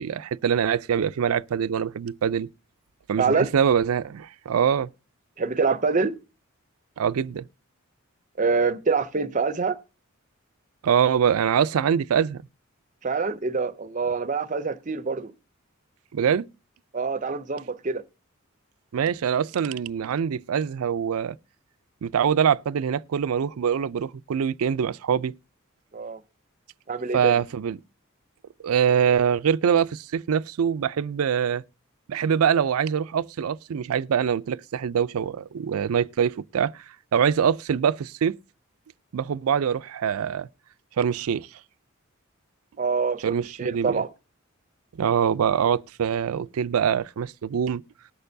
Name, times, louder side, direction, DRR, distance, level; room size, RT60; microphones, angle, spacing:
voice 1, 0.0-2.5 3.1-4.9 7.0-7.4 10.8-12.4 16.1-16.5 18.9-21.4 22.0-25.3 27.1-27.8 28.6-31.6 32.1-36.8 37.1-38.3 39.1-40.5 41.0-41.5 43.2-44.0 45.0-47.8, right 7 dB, 90° right, 0.4 m, -24 dB
voice 2, 3.2-3.5 5.4-6.2 8.4-9.8 13.0-15.3 16.9-18.0 25.9-26.2 26.9-27.4 42.8-44.1, right 4 dB, 35° right, 0.5 m, -25 dB
19.0 x 6.7 x 2.7 m
head